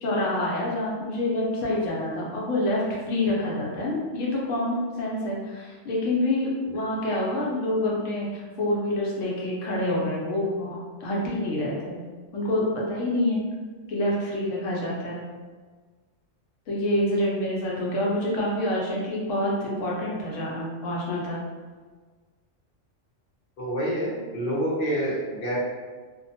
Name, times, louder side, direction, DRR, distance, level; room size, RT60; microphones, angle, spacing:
voice 1, 0.0-12.0 12.3-13.4 13.9-15.2 16.7-21.4, left 1 dB, 85° left, -4 dB, 1.0 m, -27 dB
voice 2, 23.6-25.6, right 1 dB, 50° left, -6 dB, 0.8 m, -27 dB
2.4 x 2.1 x 2.7 m, 1.4 s
omnidirectional pair, 1.3 m